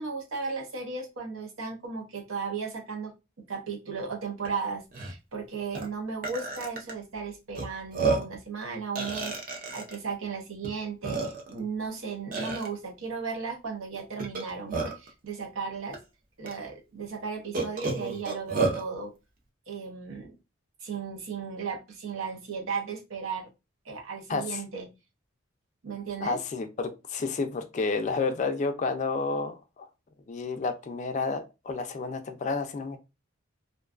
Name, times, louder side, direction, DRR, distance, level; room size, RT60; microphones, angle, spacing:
voice 1, 0.0-16.0 16.4-19.1 19.7-20.3 20.8-23.5 23.9-24.9 25.8-26.4, right 5 dB, 80° right, 0.7 m, -35 dB
Burping eructation, 4.4-4.5 4.9-5.1 5.7-5.9 6.2-6.9 7.5-7.6 7.9-8.4 8.9-9.9 10.6-10.7 11.0-11.6 12.3-12.7 14.2-15.1 15.9-16.0 16.4-16.5 17.5-18.8, right 3 dB, 45° right, 0.5 m, -30 dB
voice 2, 24.3-24.6 26.2-29.9 30.3-33.0, left 4 dB, 35° left, 0.3 m, -30 dB
2.5 x 2.2 x 2.3 m
head